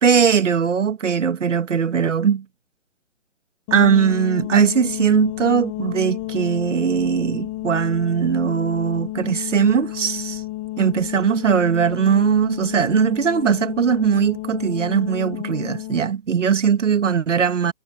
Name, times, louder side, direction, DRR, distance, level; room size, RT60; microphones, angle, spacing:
voice 1, 0.0-2.4 3.7-10.4 10.8-17.7, right 7 dB, 80° right, 1.8 m, -20 dB
sound 1, 3.7-16.0, left 17 dB, 10° left, 0.9 m, -31 dB
hypercardioid pair, 165°, 36 cm